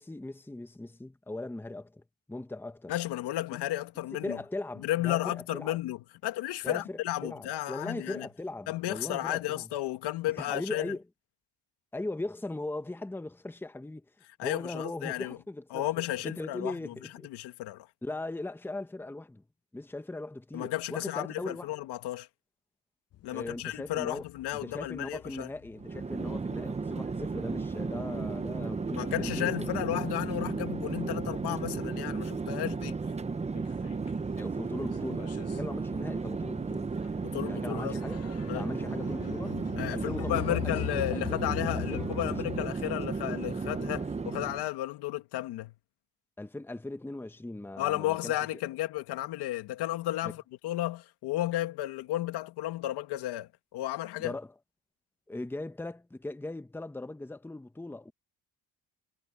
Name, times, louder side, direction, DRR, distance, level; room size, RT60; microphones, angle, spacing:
voice 1, 0.0-2.0 2.3-2.9 4.2-5.8 6.6-9.7 10.3-11.0 11.9-14.1 14.4-15.8 16.2-17.3 18.0-19.4 19.7-21.7 23.3-24.2 24.5-29.8 34.4-36.9 37.5-38.2 38.5-39.5 39.9-41.4 41.8-42.6 46.4-48.3 50.2-50.3 54.2-54.5 55.3-58.1, left 2 dB, 5° left, 1.0 m, -39 dB
voice 2, 2.9-4.4 4.8-8.3 8.7-10.9 14.4-15.4 15.7-16.9 17.2-17.9 20.5-22.3 23.2-25.5 28.9-33.0 37.2-38.0 38.5-38.7 39.8-45.7 47.8-54.4, left 15 dB, 80° left, 2.2 m, -33 dB
sound 1, 23.1-29.8 30.1-31.2 31.6-31.7 32.1-32.2 32.4-34.3 34.6-42.6, left 14 dB, 40° left, 0.5 m, -42 dB
Chatter / Fixed-wing aircraft airplane, 25.8-44.7, right 4 dB, 15° right, 0.8 m, -34 dB
cardioid pair, 110°, 39 cm